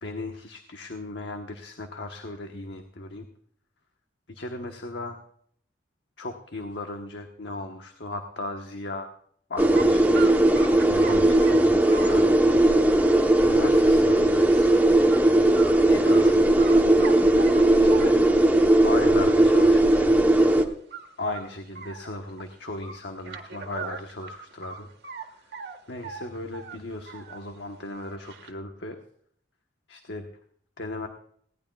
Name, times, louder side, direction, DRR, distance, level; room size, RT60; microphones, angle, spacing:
voice 1, 0.0-3.3 4.3-5.2 6.2-9.1 9.5-10.0 10.8-12.4 12.8-14.8 15.8-16.4 17.8-18.2 18.8-20.2 21.2-24.9 25.2-25.5 25.9-29.0 29.9-30.3 30.8-31.1, left 2 dB, 70° left, 4 dB, 1.2 m, -36 dB
sound 1, 9.6-20.6, right 1 dB, 10° right, 0.9 m, -18 dB
sound 2, 9.7-9.9 10.1-14.0 14.3-14.7 15.1-15.2 15.6-16.3 16.6-18.5 19.1-19.2 19.6-19.7 20.0-20.1 20.4-20.7 20.9-22.4 22.8-25.3 25.5-27.4 27.8-28.5, right 5 dB, 60° right, 1.6 m, -40 dB
20.0 x 17.0 x 2.4 m, 0.63 s
head